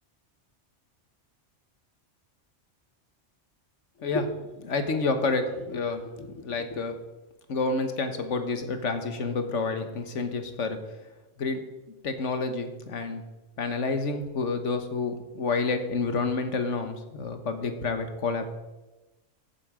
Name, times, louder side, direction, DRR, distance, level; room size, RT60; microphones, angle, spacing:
voice 1, 4.6-6.9 7.5-10.8 11.4-11.6 12.0-13.2 13.6-18.5, left 3 dB, 80° left, 7 dB, 1.6 m, -29 dB
14.5 x 8.6 x 5.0 m, 1.1 s
omnidirectional pair, 1.2 m